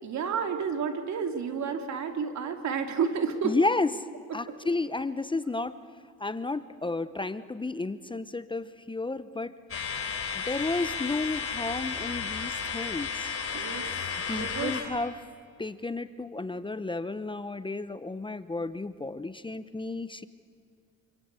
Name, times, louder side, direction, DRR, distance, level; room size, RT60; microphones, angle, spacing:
voice 1, 0.0-3.6 4.5-4.6 13.5-14.0 14.3-14.7, right 6 dB, 65° right, 6 dB, 3.0 m, -31 dB
voice 2, 3.4-3.9 4.3-5.7 6.2-9.6 10.3-13.3 14.3-15.2 15.6-20.3, left 3 dB, 15° left, 13 dB, 0.9 m, -32 dB
sound 1, 9.7-14.8, left 6 dB, 50° left, 4.3 m, -33 dB
27.0 x 25.5 x 8.3 m, 2.2 s
cardioid pair, 90°, 30 cm